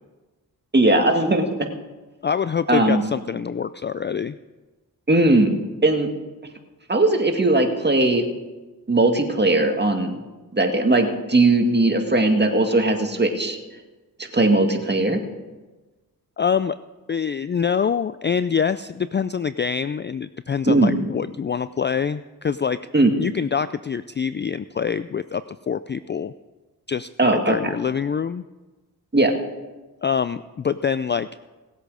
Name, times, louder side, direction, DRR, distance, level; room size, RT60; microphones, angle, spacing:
voice 1, 0.7-1.5 2.7-3.0 5.1-5.5 5.8-6.1 6.9-8.3 8.9-10.2 10.5-13.6 14.3-15.2 20.7-21.0 22.9-23.2 27.2-27.6 29.1-29.3, right 2 dB, 25° right, 4 dB, 2.0 m, -18 dB
voice 2, 2.2-4.4 16.4-16.8 17.1-22.8 23.2-26.3 26.9-28.4 30.0-31.3, left 7 dB, 30° left, 14 dB, 0.4 m, -25 dB
18.5 x 8.2 x 5.0 m, 1.2 s
cardioid pair, 55°, 39 cm